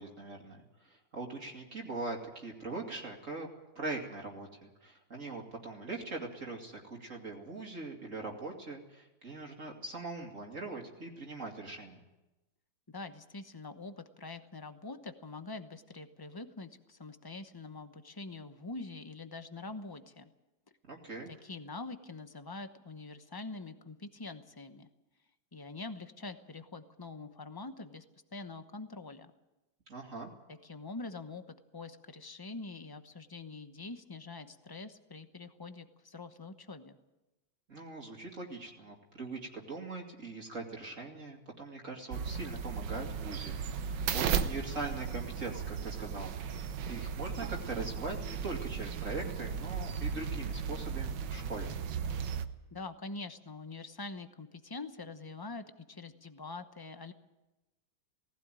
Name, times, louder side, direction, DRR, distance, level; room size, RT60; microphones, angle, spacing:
voice 1, 0.0-3.5 3.8-12.0 20.9-21.3 29.9-30.3 37.7-51.7, right 3 dB, 45° right, 1 dB, 2.7 m, -41 dB
voice 2, 12.9-20.3 21.3-24.9 25.5-28.0 28.3-29.3 30.5-31.4 31.7-37.0 52.7-57.1, left 3 dB, 20° left, 9 dB, 0.6 m, -44 dB
sound 1, 42.1-52.5, right 7 dB, 75° right, 1.6 m, -36 dB
18.5 x 16.5 x 9.0 m, 1.0 s
omnidirectional pair, 2.0 m